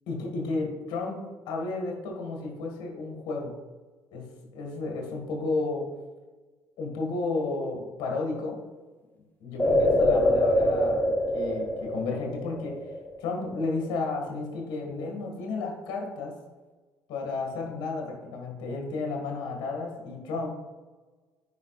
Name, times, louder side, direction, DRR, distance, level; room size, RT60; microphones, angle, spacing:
voice 1, 0.1-1.2 1.5-3.5 4.1-5.9 6.8-8.6 9.4-12.8 13.2-16.3 17.1-20.5, left 3 dB, 65° left, 1 dB, 1.8 m, -32 dB
sound 1, 9.6-13.3 13.6-13.7, left 1 dB, 20° left, 1.2 m, -24 dB
9.5 x 4.9 x 2.4 m, 1.3 s
hypercardioid pair, 65°, 9 cm